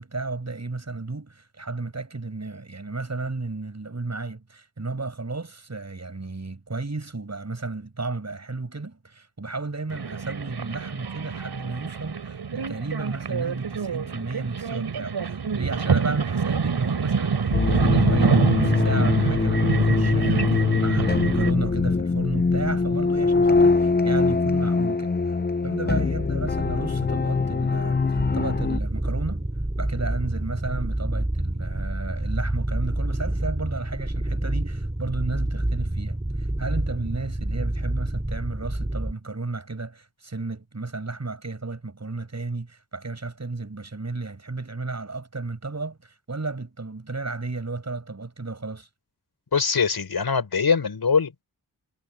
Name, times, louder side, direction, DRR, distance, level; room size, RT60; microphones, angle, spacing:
voice 1, 0.0-25.4 25.6-29.4 29.8-48.9, right 3 dB, 40° right, 7.6 m, -33 dB
sound 1, 9.9-21.5, right 5 dB, 75° right, 4.7 m, -26 dB
sound 2, 17.5-28.8, left 4 dB, 25° left, 0.7 m, -22 dB
sound 3, 28.1-39.1, right 1 dB, 15° right, 5.8 m, -28 dB
voice 2, 49.5-51.4, left 5 dB, 70° left, 6.5 m, -22 dB
cardioid pair, 45°, 39 cm